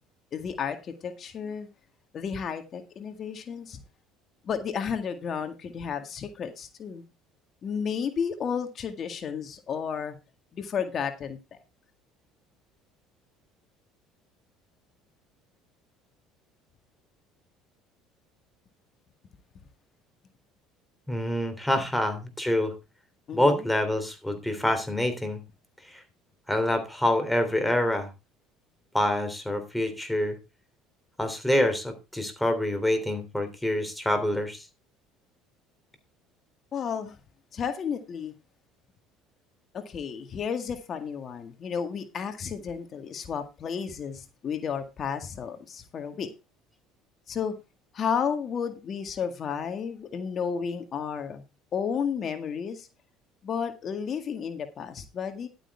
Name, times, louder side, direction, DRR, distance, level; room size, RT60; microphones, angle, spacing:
voice 1, 0.3-1.7 2.1-3.8 4.4-7.0 7.6-10.2 10.5-11.6 23.3-23.7 36.7-37.2 37.5-38.3 39.7-46.3 47.3-47.5 47.9-51.4 51.7-52.9 53.4-55.5, left 7 dB, 40° left, 1.9 m, -32 dB
voice 2, 21.1-22.7 23.3-25.4 25.9-26.0 26.5-28.1 28.9-30.3 31.2-34.6, left 1 dB, 5° left, 3.2 m, -26 dB
12.0 x 9.0 x 3.5 m
cardioid pair, 115°, 0 cm